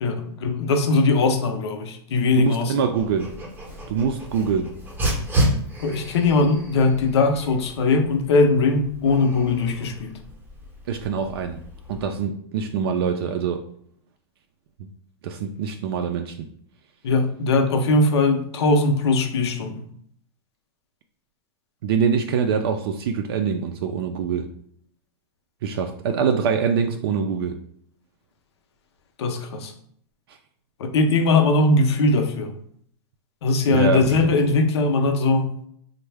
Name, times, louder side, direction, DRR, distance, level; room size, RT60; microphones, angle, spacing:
voice 1, 0.0-2.7 5.8-10.2 17.0-19.9 29.2-29.7 30.8-32.5 33.4-35.6, left 3 dB, 75° left, 5 dB, 0.6 m, -20 dB
voice 2, 2.4-3.3 3.9-4.7 10.9-11.6 11.9-13.6 14.8-14.9 15.2-16.5 21.8-24.5 25.6-27.6 30.3-30.4 33.7-34.3, right 6 dB, 60° right, 5 dB, 0.4 m, -24 dB
Dog, 3.0-12.0, equal, 15° right, 0.7 m, -31 dB
3.5 x 2.1 x 3.3 m, 0.65 s
supercardioid pair, 155°, 14 cm